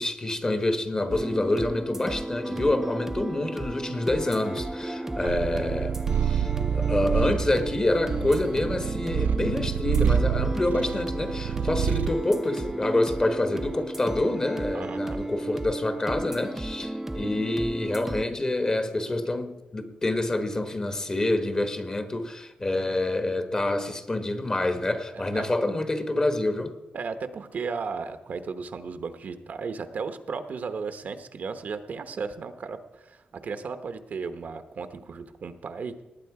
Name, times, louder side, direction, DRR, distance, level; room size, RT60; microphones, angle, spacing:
voice 1, 0.0-6.0 6.2-26.7, left 2 dB, 25° left, 1.1 m, -27 dB
sound 1, 1.1-18.2, right 1 dB, 15° right, 0.6 m, -34 dB
Purr, 5.3-12.2, right 7 dB, 90° right, 0.4 m, -27 dB
voice 2, 14.7-15.2 25.1-25.5 26.9-36.0, right 5 dB, 60° right, 0.9 m, -35 dB
19.0 x 9.0 x 4.8 m
wide cardioid pair, 120°, 3 cm